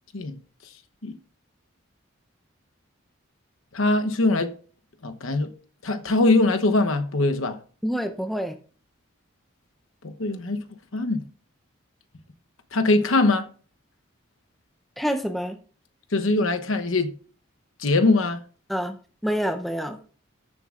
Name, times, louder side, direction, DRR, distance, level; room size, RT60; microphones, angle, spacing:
voice 1, 3.7-4.5 5.0-5.5 5.8-7.6 10.0-10.6 10.9-11.2 12.7-13.5 16.1-17.1 17.8-18.4, left 2 dB, 75° left, 1.0 m, -22 dB
voice 2, 7.8-8.6 15.0-15.6 18.7-19.0 19.2-20.0, equal, ahead, 0.6 m, -27 dB
13.5 x 7.1 x 2.5 m
head